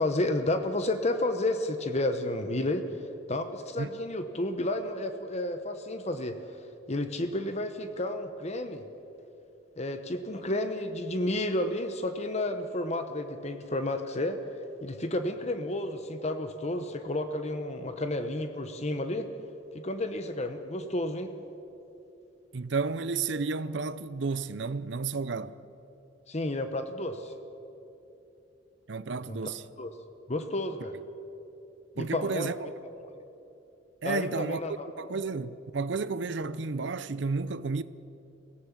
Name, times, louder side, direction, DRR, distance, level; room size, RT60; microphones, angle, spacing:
voice 1, 0.0-2.9 3.3-6.6 6.9-8.8 9.8-14.4 14.8-19.3 19.7-21.3 26.3-27.3 29.3-29.4 29.8-29.9 30.3-31.0 32.0-32.5 33.0-33.1 34.0-34.9, left 1 dB, 35° left, 1.0 m, -31 dB
voice 2, 22.5-25.6 28.9-29.6 32.0-32.6 34.0-34.6 35.0-37.8, right 4 dB, 65° right, 0.6 m, -32 dB
24.0 x 17.0 x 7.3 m
head